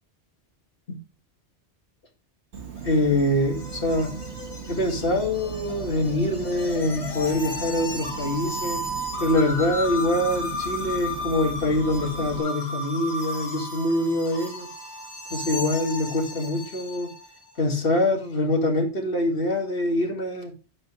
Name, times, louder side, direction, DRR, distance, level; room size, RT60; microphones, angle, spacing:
Insect, 2.5-12.4, right 7 dB, 80° right, 1.6 m, -38 dB
sound 1, 2.8-17.4, left 2 dB, 70° left, 1.7 m, -34 dB
voice 1, 2.8-4.1 4.7-8.8 9.2-14.7 15.3-17.1 17.6-20.5, left 1 dB, 55° left, 1.9 m, -24 dB
7.5 x 5.3 x 4.8 m
omnidirectional pair, 1.1 m